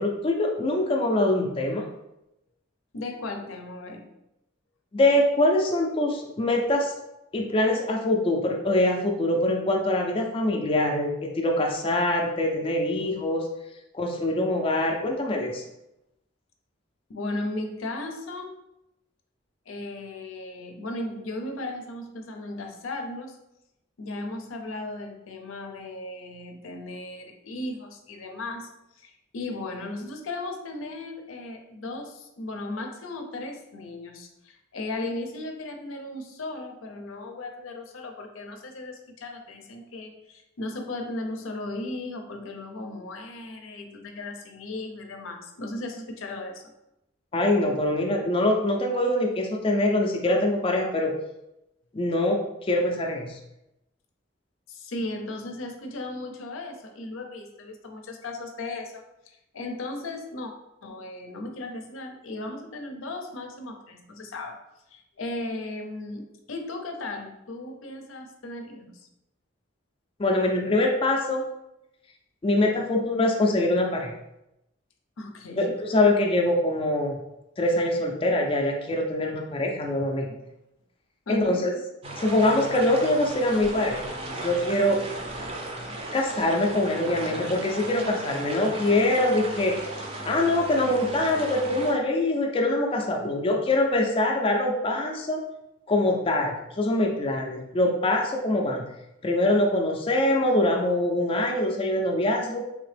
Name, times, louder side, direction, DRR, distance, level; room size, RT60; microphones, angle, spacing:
voice 1, 0.0-1.8 4.9-6.9 7.3-13.5 13.9-15.6 47.3-51.1 51.9-53.4 70.2-71.5 72.4-74.1 75.6-77.2 77.6-80.4 81.3-81.7 82.2-85.0 86.1-89.8 90.3-95.4 95.9-98.8 99.2-102.6, left 1 dB, 25° left, 0 dB, 0.4 m, -24 dB
voice 2, 2.9-4.1 17.1-18.6 19.7-23.4 24.0-46.6 54.7-60.5 60.8-64.6 64.9-69.0 75.2-75.7 81.3-81.7, left 2 dB, 85° left, 4 dB, 0.6 m, -36 dB
sound 1, 82.0-91.9, right 1 dB, 30° right, 0.5 m, -36 dB
3.4 x 2.8 x 3.3 m, 0.87 s
head